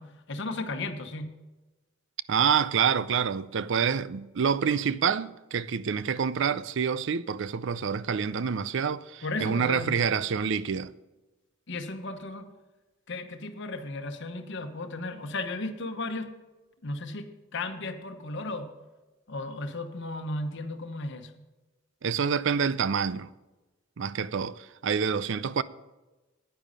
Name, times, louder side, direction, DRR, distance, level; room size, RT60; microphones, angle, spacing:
voice 1, 0.0-1.3 9.2-10.0 11.7-12.5 13.1-16.3 16.8-18.7 19.3-21.4, left 2 dB, 65° left, 1.0 m, -35 dB
voice 2, 2.3-10.9 22.0-23.3 24.0-25.6, right 6 dB, 65° right, 0.5 m, -27 dB
10.0 x 9.3 x 5.5 m
head